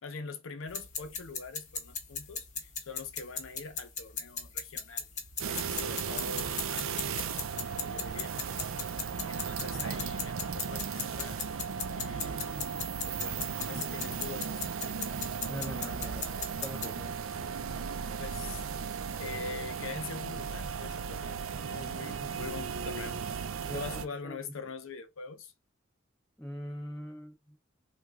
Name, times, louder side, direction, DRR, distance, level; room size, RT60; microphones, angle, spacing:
voice 1, 0.0-5.1 5.5-7.0 7.7-8.3 9.3-11.4 11.9-12.7 13.1-14.6 14.9-15.1 18.2-18.6 19.2-23.2 23.7-25.5, left 4 dB, 75° left, 0.7 m, -43 dB
sound 1, 0.7-17.0, left 6 dB, 40° left, 0.8 m, -39 dB
sound 2, 5.4-24.1, right 6 dB, 85° right, 0.5 m, -36 dB
voice 2, 7.8-8.6 15.5-16.3 16.6-17.2 21.7-22.5 23.6-24.5 26.4-27.6, equal, 5° left, 0.5 m, -43 dB
3.1 x 2.3 x 3.5 m
head